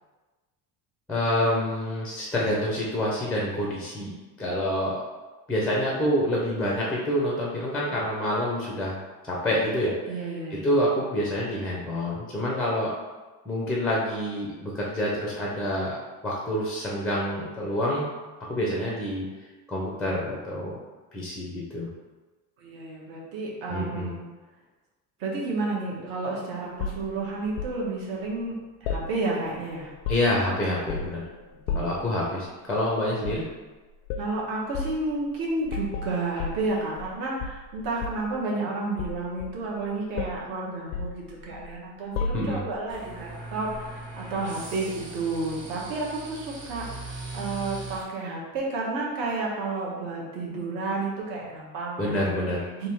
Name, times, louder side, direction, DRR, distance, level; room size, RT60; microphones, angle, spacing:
voice 1, 1.1-4.1 4.4-5.0 5.5-9.0 9.3-9.9 10.5-12.9 13.5-16.0 16.2-18.1 18.4-19.3 19.7-20.8 21.1-21.9 23.7-24.1 30.1-31.2 31.7-33.4 42.3-42.6 52.0-52.7, left 1 dB, 5° left, -4 dB, 0.4 m, -27 dB
voice 2, 10.1-10.7 18.6-18.7 22.6-24.2 25.2-29.9 31.7-31.9 34.2-47.1 47.3-52.2 52.8-52.9, right 3 dB, 65° right, -3 dB, 1.3 m, -31 dB
sound 1, 26.8-27.8 28.8-29.6 29.9-30.5 30.9-31.2 31.7-32.1 33.2-33.5 34.1-34.3 34.7-35.0 35.7-37.1 37.4-38.3 39.0-39.8 40.2-40.5 40.9-41.7 42.1-42.8 43.7-43.9, left 4 dB, 85° left, 0.5 m, -33 dB
sound 2, 42.9-48.0, right 2 dB, 30° right, 0.7 m, -40 dB
3.5 x 2.7 x 4.4 m, 1.2 s
cardioid pair, 170°, 38 cm